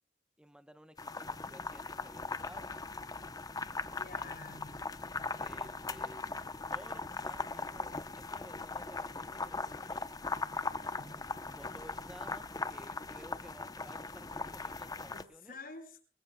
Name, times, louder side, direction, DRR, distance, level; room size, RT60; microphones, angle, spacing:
voice 1, 0.4-2.7 4.0-4.4 4.6-4.8 5.3-6.3 6.7-10.1 10.8-15.6, equal, 5° right, 11 dB, 0.9 m, -55 dB
sound 1, 1.0-15.2, left 3 dB, 20° left, 0.8 m, -39 dB
voice 2, 3.7-4.8 10.9-11.3 15.1-16.0, left 3 dB, 55° left, -4 dB, 6.8 m, -50 dB
28.5 x 20.5 x 2.3 m, 0.42 s
head